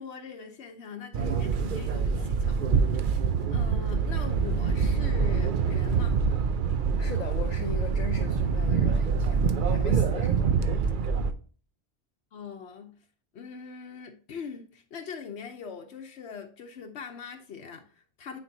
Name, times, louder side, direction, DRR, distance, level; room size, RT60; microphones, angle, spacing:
voice 1, 0.0-3.1 3.5-6.3 12.3-12.9 13.3-18.4, left 6 dB, 90° left, 1.1 m, -42 dB
sound 1, 1.1-11.3, right 6 dB, 55° right, 0.7 m, -25 dB
voice 2, 7.0-10.5, left 6 dB, 45° left, 0.7 m, -39 dB
9.2 x 4.4 x 2.7 m
omnidirectional pair, 1.1 m